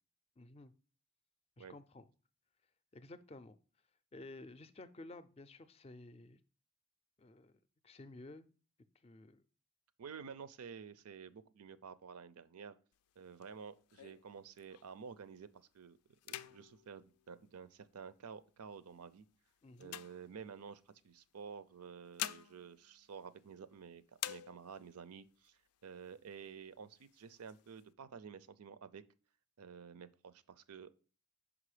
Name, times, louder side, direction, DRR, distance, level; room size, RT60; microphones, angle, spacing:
voice 1, 0.4-0.7 1.6-2.1 2.9-3.6 4.1-6.4 7.2-7.6 7.8-8.5 8.9-9.4 19.6-20.0, left 2 dB, 25° left, 0.4 m, -53 dB
voice 2, 10.0-12.8 13.2-16.0 16.2-19.2 19.8-29.0 29.6-30.9, right 6 dB, 90° right, 0.5 m, -51 dB
sound 1, 12.9-15.1 15.6-15.8 16.1-18.1 18.7-20.9 21.8-23.8 24.1-25.0 25.4-25.5 25.8-26.5 26.9-27.8, left 13 dB, 90° left, 0.4 m, -48 dB
6.1 x 5.0 x 4.9 m
head